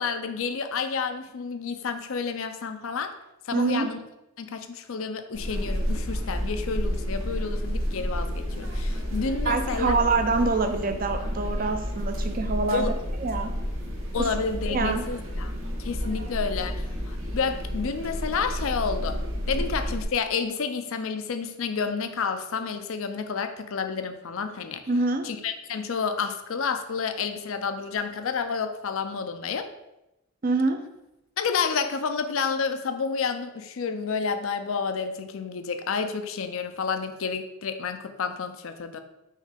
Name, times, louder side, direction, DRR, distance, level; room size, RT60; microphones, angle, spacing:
voice 1, 0.0-3.1 3.5-4.0 4.4-9.9 12.7-12.9 14.1-15.5 15.8-19.2 19.5-24.8 25.2-29.7 31.4-39.0, left 5 dB, 65° left, 8 dB, 0.5 m, -30 dB
voice 2, 3.5-3.9 9.5-12.9 13.2-13.5 14.7-15.1 16.2-16.3 24.9-25.3 30.4-30.8, right 3 dB, 40° right, 7 dB, 0.6 m, -25 dB
sound 1, 5.3-20.0, equal, 65° right, 1.3 m, -30 dB
6.4 x 3.2 x 5.1 m, 0.92 s
head